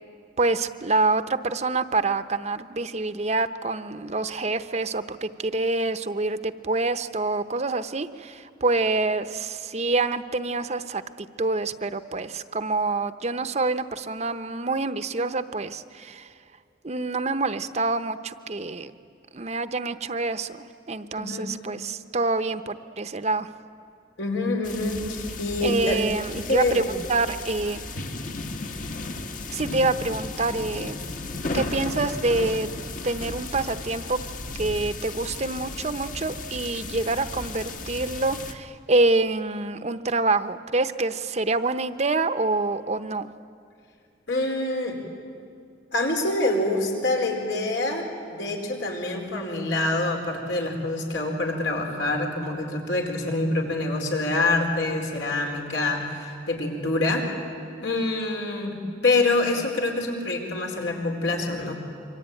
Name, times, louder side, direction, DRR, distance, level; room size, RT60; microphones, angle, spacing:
voice 1, 0.4-16.3 16.8-18.9 19.3-23.5 25.6-26.8 27.1-27.8 29.5-31.0 31.5-32.7 33.0-34.2 34.6-43.3, right 3 dB, 40° right, 10 dB, 0.8 m, -26 dB
voice 2, 21.2-21.5 24.2-26.0 26.4-26.9 44.3-45.0 45.9-57.3 57.8-61.7, left 2 dB, 85° left, 1 dB, 4.6 m, -26 dB
sound 1, 24.6-38.5, left 2 dB, 45° left, 1.4 m, -35 dB
26.5 x 24.0 x 9.1 m, 2.4 s
head